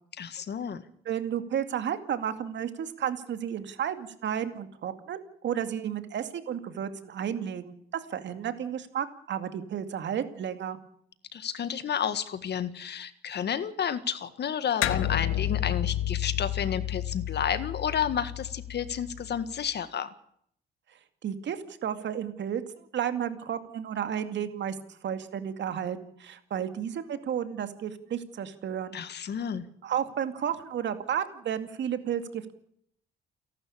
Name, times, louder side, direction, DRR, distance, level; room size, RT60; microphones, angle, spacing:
voice 1, 0.2-0.8 11.3-20.1 28.9-29.6, left 8 dB, 55° left, 12 dB, 1.7 m, -31 dB
voice 2, 1.1-10.8 21.2-29.0 29.8-32.5, right 9 dB, 65° right, 9 dB, 2.3 m, -32 dB
sound 1, 14.8-19.6, left 12 dB, 90° left, 1.1 m, -31 dB
29.0 x 11.5 x 8.7 m, 0.69 s
cardioid pair, 90°, 20 cm